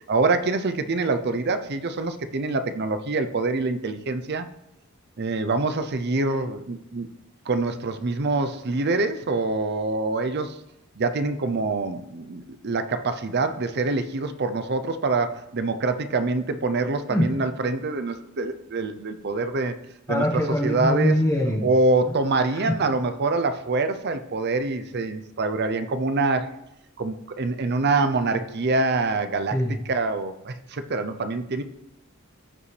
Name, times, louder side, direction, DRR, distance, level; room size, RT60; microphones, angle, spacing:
voice 1, 0.1-4.5 5.2-7.1 7.5-10.6 11.0-19.8 20.1-20.2 20.6-21.2 21.6-26.5 27.0-29.6 29.9-31.6, right 3 dB, 50° right, 10 dB, 0.6 m, -25 dB
voice 2, 20.1-21.7 22.5-22.8 29.5-29.8, left 1 dB, 15° left, 1 dB, 1.5 m, -23 dB
15.0 x 5.3 x 3.3 m, 0.88 s
head